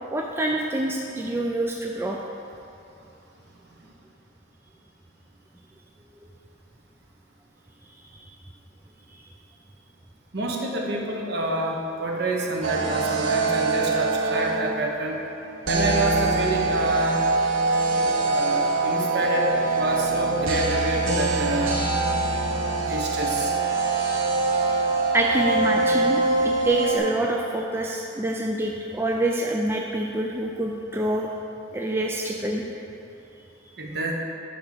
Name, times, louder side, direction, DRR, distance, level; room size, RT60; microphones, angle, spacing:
voice 1, 0.1-2.2 25.1-31.3 31.7-32.7, right 1 dB, 10° right, -1 dB, 0.4 m, -26 dB
voice 2, 10.3-15.2 15.7-17.2 17.9-21.8 22.8-23.6 33.8-34.1, right 1 dB, 55° right, -1 dB, 1.1 m, -28 dB
sound 1, 12.6-14.9 15.7-27.0, right 3 dB, 85° right, 0.9 m, -23 dB
10.0 x 3.6 x 6.7 m, 2.7 s
head